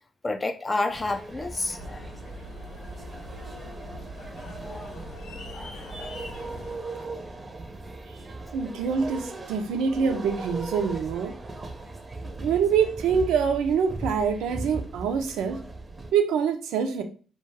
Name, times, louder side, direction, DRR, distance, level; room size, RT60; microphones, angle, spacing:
voice 1, 0.2-2.0 4.4-4.8 5.5-6.1, left 2 dB, 30° left, 0.3 m, -31 dB
sound 1, 0.9-16.1, right 2 dB, 30° right, 0.5 m, -39 dB
sound 2, 1.8-6.8, left 1 dB, 85° left, 0.6 m, -42 dB
voice 2, 8.5-11.3 12.4-15.6 16.1-17.0, right 6 dB, 85° right, 0.4 m, -25 dB
2.3 x 2.2 x 3.3 m
supercardioid pair, 70°, 0 cm